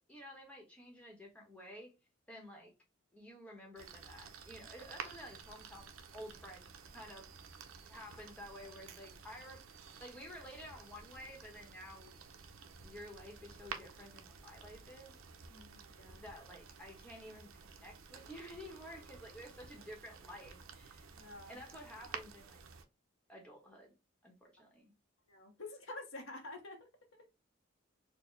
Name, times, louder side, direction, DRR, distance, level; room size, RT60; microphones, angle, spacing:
voice 1, 0.0-1.9 2.3-2.7 3.1-7.3 7.8-9.6 10.0-12.2 12.8-15.2 16.2-21.1 21.5-22.6 23.3-23.9 24.2-24.9, equal, 5° left, 1.0 m, -52 dB
sound 1, 3.8-22.8, right 5 dB, 85° right, 0.6 m, -52 dB
voice 2, 15.5-16.3 21.1-21.6 25.3-27.3, left 2 dB, 85° left, 0.9 m, -49 dB
4.3 x 2.1 x 3.1 m
head